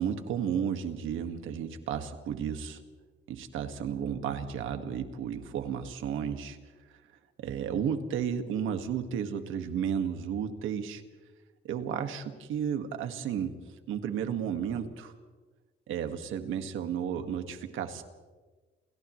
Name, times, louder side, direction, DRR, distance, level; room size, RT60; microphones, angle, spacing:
voice 1, 0.0-2.8 3.3-6.6 7.4-11.0 11.6-13.5 13.9-15.1 15.9-18.0, right 8 dB, 85° right, 7 dB, 1.9 m, -33 dB
29.5 x 28.0 x 3.2 m, 1.3 s
cardioid pair, 90°, 20 cm